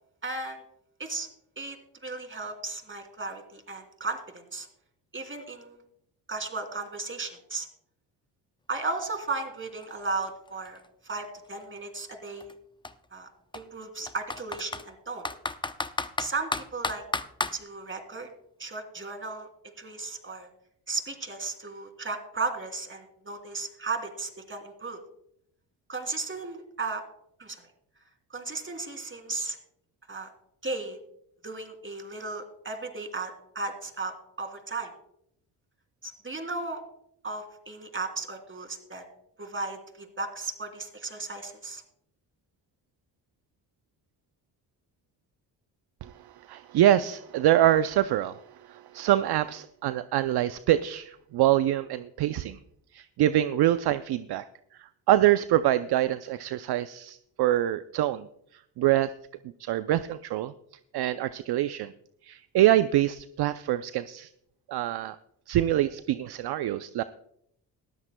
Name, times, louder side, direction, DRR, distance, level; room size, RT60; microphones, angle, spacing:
voice 1, 0.2-0.6 1.0-1.3 1.6-1.8 2.0-4.7 5.1-5.8 6.3-7.7 8.7-12.5 13.1-15.2 16.2-17.0 17.5-18.3 18.6-19.5 19.8-20.5 20.9-25.0 25.9-27.0 27.4-27.7 28.3-29.6 30.1-30.3 30.6-31.0 31.4-34.9 36.0-36.8 37.2-39.0 39.4-41.8, right 3 dB, 25° right, 5 dB, 2.9 m, -35 dB
Computer keyboard, 9.3-9.4 9.7-11.6 12.4-12.5 12.8-12.9 13.5-14.9 15.2-17.6, left 3 dB, 10° left, 0.6 m, -32 dB
voice 2, 46.5-52.6 52.9-54.4 55.1-58.3 58.8-59.1 59.6-60.5 60.9-61.9 62.2-64.3 64.7-65.2 65.5-67.0, right 13 dB, 60° right, 13 dB, 0.6 m, -25 dB
19.0 x 13.0 x 2.2 m, 0.73 s
supercardioid pair, 60°, 44 cm